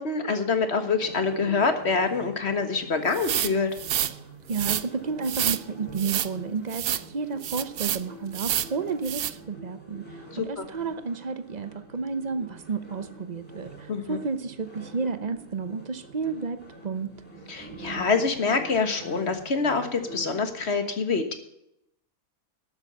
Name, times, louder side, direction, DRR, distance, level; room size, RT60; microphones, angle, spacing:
voice 1, 0.0-3.7 10.3-10.7 13.9-14.2 17.5-21.4, left 4 dB, 50° left, 8 dB, 1.7 m, -26 dB
sound 1, 1.0-20.5, right 2 dB, 5° left, 3.6 m, -45 dB
sound 2, 3.1-4.1 4.5-4.8 5.2-5.6 6.0-6.3 6.7-7.0 7.4-8.0 8.3-8.7 9.0-9.3, right 10 dB, 60° right, 0.6 m, -28 dB
voice 2, 4.5-17.1, right 5 dB, 35° right, 12 dB, 0.9 m, -31 dB
12.5 x 8.1 x 6.9 m, 0.80 s
omnidirectional pair, 1.5 m